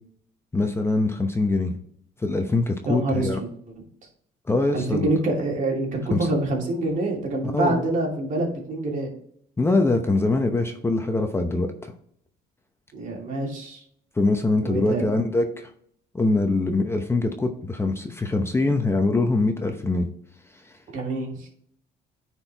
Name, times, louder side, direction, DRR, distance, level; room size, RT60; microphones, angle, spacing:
voice 1, 0.5-1.7 2.2-3.4 4.5-5.1 6.1-6.2 7.5-7.9 9.6-11.9 14.2-15.7 16.1-20.1, left 2 dB, 15° left, 5 dB, 0.8 m, -23 dB
voice 2, 2.8-3.5 4.7-9.1 12.9-13.8 14.6-15.2 20.9-21.5, right 2 dB, 50° right, -1 dB, 2.7 m, -26 dB
9.6 x 4.6 x 3.4 m, 0.65 s
cardioid pair, 110°, 17 cm